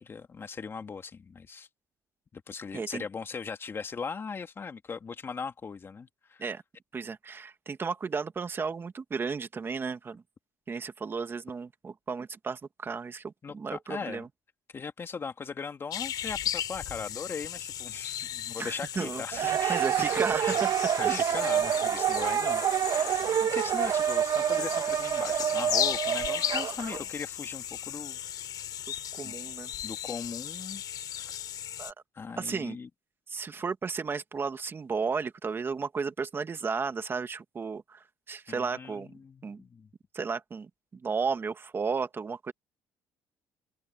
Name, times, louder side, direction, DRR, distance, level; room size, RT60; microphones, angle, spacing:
voice 1, 0.0-1.7 2.3-6.4 13.4-14.3 14.7-28.2 29.2-29.3 29.8-30.8 31.1-31.4 32.1-32.9 38.5-39.9, left 5 dB, 35° left, 2.2 m, -39 dB
voice 2, 2.7-3.0 6.4-6.6 6.9-10.2 10.7-14.3 18.6-20.7 21.0-21.3 29.1-29.7 31.8-31.9 32.4-32.8 33.3-39.1 39.4-39.6 40.1-42.5, right 5 dB, 30° right, 1.9 m, -34 dB
sound 1, 15.9-31.9, left 11 dB, 65° left, 3.5 m, -36 dB
sound 2, 19.3-27.0, right 10 dB, 60° right, 1.5 m, -28 dB
open air
cardioid pair, 105°, 7 cm